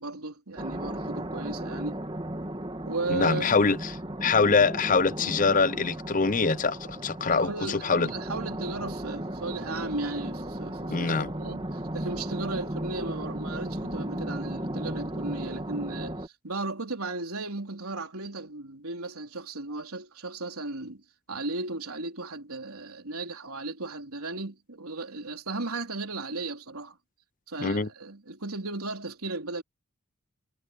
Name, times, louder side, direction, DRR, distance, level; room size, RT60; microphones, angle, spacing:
voice 1, 0.0-2.0 2.9-3.5 7.3-21.0 21.3-27.0 27.5-29.6, right 2 dB, 85° right, 3.7 m, -35 dB
sound 1, 0.6-16.3, right 1 dB, 25° right, 2.0 m, -35 dB
voice 2, 3.1-8.1 10.9-11.3 27.6-27.9, left 4 dB, 35° left, 0.6 m, -24 dB
head